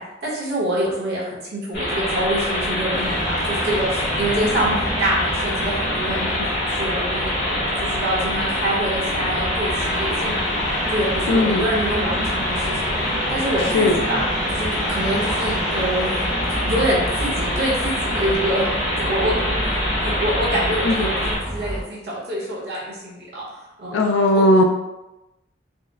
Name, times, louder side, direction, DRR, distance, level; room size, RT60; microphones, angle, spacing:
voice 1, 0.0-6.4 6.7-10.6 10.9-16.2 16.5-24.0 24.3-24.4, right 1 dB, 55° right, -6 dB, 1.0 m, -26 dB
sound 1, 1.7-21.4, left 1 dB, 60° left, 1.5 m, -24 dB
sound 2, 2.9-21.8, equal, ahead, 0.8 m, -31 dB
voice 2, 11.3-11.6 13.7-14.0 20.9-21.1 23.9-24.7, left 1 dB, 85° left, 3 dB, 0.3 m, -17 dB
4.2 x 2.0 x 2.4 m, 0.98 s
head